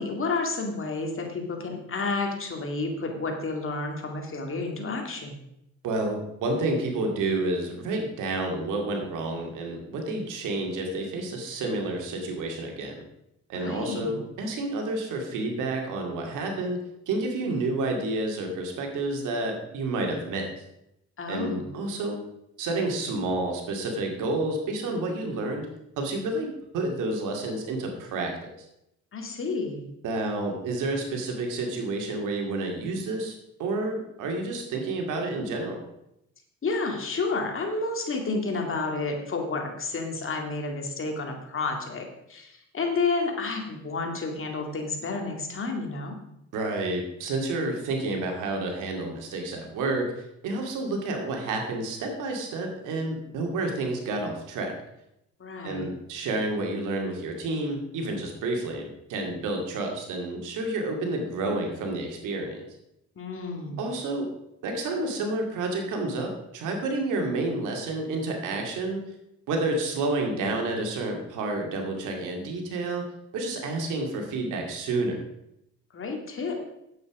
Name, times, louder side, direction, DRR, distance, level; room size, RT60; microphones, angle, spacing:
voice 1, 0.0-5.4 13.5-14.2 21.2-21.7 29.1-29.9 36.6-46.1 55.4-55.9 63.2-63.8 75.9-76.7, left 3 dB, 45° left, 2 dB, 2.4 m, -30 dB
voice 2, 5.8-13.0 13.5-20.5 21.3-22.2 22.6-25.7 26.0-26.5 26.7-28.5 30.0-33.3 33.6-35.8 46.5-54.7 55.6-62.6 63.8-64.3 64.6-69.0 69.5-73.1 73.3-75.2, right 2 dB, 90° right, 2 dB, 2.4 m, -30 dB
9.5 x 8.3 x 4.9 m, 0.82 s
cardioid pair, 90°, 30 cm